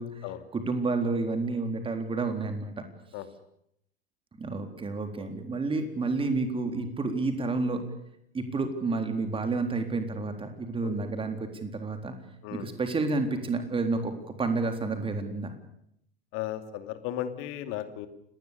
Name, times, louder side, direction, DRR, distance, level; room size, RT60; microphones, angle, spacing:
voice 1, 0.5-2.9 4.4-7.8 8.3-12.1 12.5-15.5, right 3 dB, 15° right, 7 dB, 3.9 m, -30 dB
voice 2, 16.3-18.1, left 12 dB, 45° left, 10 dB, 2.7 m, -35 dB
30.0 x 20.0 x 6.9 m, 0.74 s
figure-of-eight pair, 85°, 31 cm